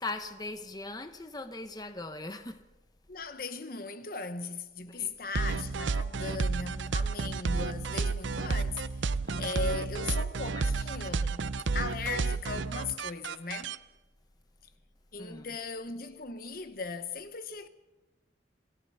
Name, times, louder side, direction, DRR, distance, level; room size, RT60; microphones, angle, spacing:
voice 1, 0.0-2.6 4.8-5.1 9.2-9.6 10.5-10.7 15.2-15.5, left 2 dB, 20° left, 0.9 m, -40 dB
voice 2, 3.1-9.1 9.4-13.8 15.1-17.7, left 4 dB, 50° left, 1.1 m, -38 dB
sound 1, 5.3-13.8, right 4 dB, 80° right, 0.6 m, -31 dB
26.5 x 17.5 x 5.6 m
head